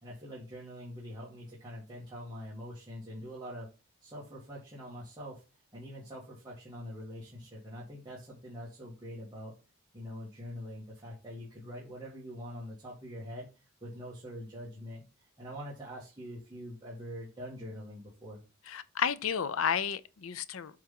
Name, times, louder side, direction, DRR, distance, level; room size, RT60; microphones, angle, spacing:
voice 1, 0.0-3.7 4.0-9.5 9.9-15.0 15.4-18.4, equal, 20° right, 1.9 m, -44 dB
voice 2, 18.7-20.8, left 7 dB, 85° left, 0.6 m, -32 dB
7.6 x 3.6 x 5.5 m
head